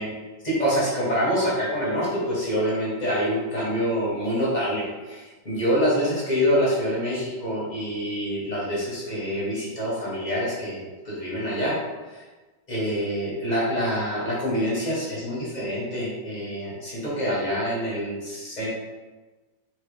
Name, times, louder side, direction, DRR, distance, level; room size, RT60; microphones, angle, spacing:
voice 1, 0.4-11.8 12.1-12.2 12.7-18.7, equal, 30° left, -7 dB, 0.8 m, -26 dB
4.6 x 2.8 x 3.2 m, 1.2 s
omnidirectional pair, 2.4 m